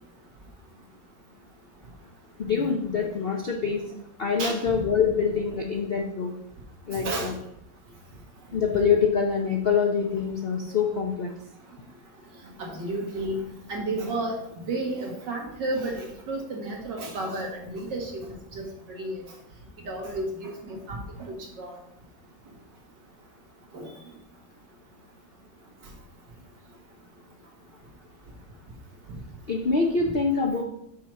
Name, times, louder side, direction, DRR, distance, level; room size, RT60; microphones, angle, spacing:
voice 1, 2.4-3.9 4.2-6.3 6.9-7.3 8.5-11.3 29.5-30.6, left 5 dB, 55° left, 1 dB, 0.6 m, -25 dB
voice 2, 4.4-4.7 6.9-7.3 12.6-18.2 18.5-19.2 19.9-21.7 23.7-23.9, right 2 dB, 70° right, 0 dB, 2.2 m, -32 dB
6.2 x 4.4 x 6.3 m, 0.73 s
omnidirectional pair, 2.0 m